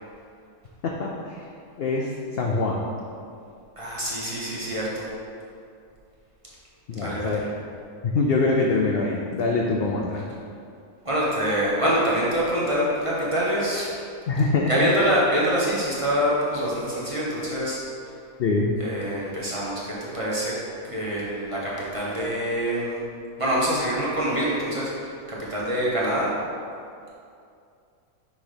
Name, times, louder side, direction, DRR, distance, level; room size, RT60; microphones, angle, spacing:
voice 1, 1.0-1.4 1.8-2.8 6.9-7.4 8.0-10.3 14.3-14.7 18.4-18.7, left 3 dB, 65° left, -1 dB, 0.6 m, -24 dB
voice 2, 3.8-5.1 6.9-7.5 11.0-13.9 14.7-17.8 18.8-23.0 23.4-26.3, equal, 25° right, -7 dB, 1.1 m, -25 dB
6.0 x 4.0 x 5.0 m, 2.4 s
omnidirectional pair, 1.6 m